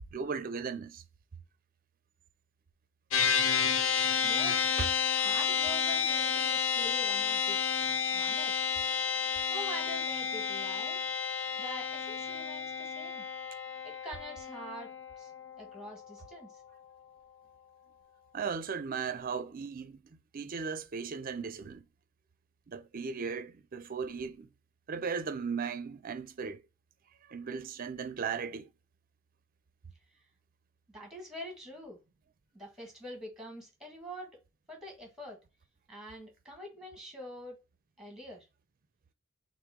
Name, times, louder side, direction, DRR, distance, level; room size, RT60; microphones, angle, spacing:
voice 1, 0.1-1.0 4.8-4.9 5.2-5.4 18.3-20.0 20.3-21.8 22.7-24.5 24.9-26.6 27.3-28.7, right 5 dB, 40° right, 0.5 m, -36 dB
sound 1, 3.1-16.7, left 6 dB, 65° left, 0.5 m, -31 dB
voice 2, 4.2-4.8 5.2-7.6 8.1-8.6 9.5-11.0 11.6-13.2 13.8-14.9 15.2-15.3 15.6-16.5 30.9-32.0 32.5-34.4 34.7-35.4 35.9-37.5 38.0-38.5, equal, ahead, 1.5 m, -45 dB
5.8 x 2.1 x 3.6 m
head